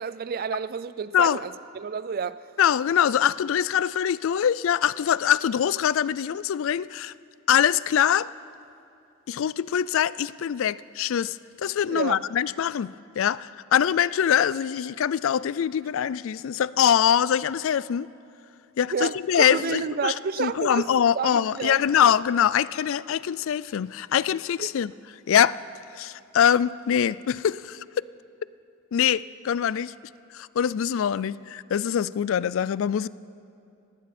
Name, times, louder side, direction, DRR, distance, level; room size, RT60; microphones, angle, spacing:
voice 1, 0.0-2.5 11.9-12.2 18.9-20.9 21.1-22.1 24.6-24.7, right 6 dB, 40° right, 0.4 m, -30 dB
voice 2, 2.6-7.1 7.5-8.3 9.3-18.1 18.8-20.1 20.4-24.9 25.3-25.6 25.9-27.8 28.9-29.9 30.3-33.1, left 9 dB, 60° left, 0.3 m, -23 dB
20.0 x 16.0 x 4.3 m
head